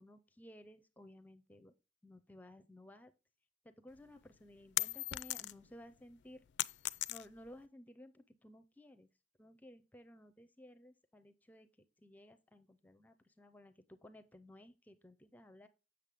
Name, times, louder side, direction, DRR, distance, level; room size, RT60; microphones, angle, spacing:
voice 1, 0.0-1.7 2.0-3.1 3.6-6.4 7.1-9.1 9.4-15.7, left 1 dB, 10° left, 10 dB, 0.5 m, -57 dB
sound 1, 4.0-5.8 6.1-7.6, left 16 dB, 75° left, 0.4 m, -38 dB
8.3 x 6.2 x 3.5 m, 0.30 s
head